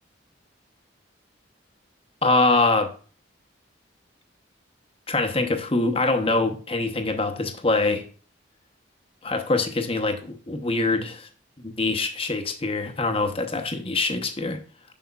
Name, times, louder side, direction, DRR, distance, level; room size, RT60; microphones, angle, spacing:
voice 1, 2.2-2.9 5.1-8.0 9.2-11.3 11.6-14.6, left 3 dB, 30° left, 0.8 m, -24 dB
7.8 x 6.3 x 2.3 m
head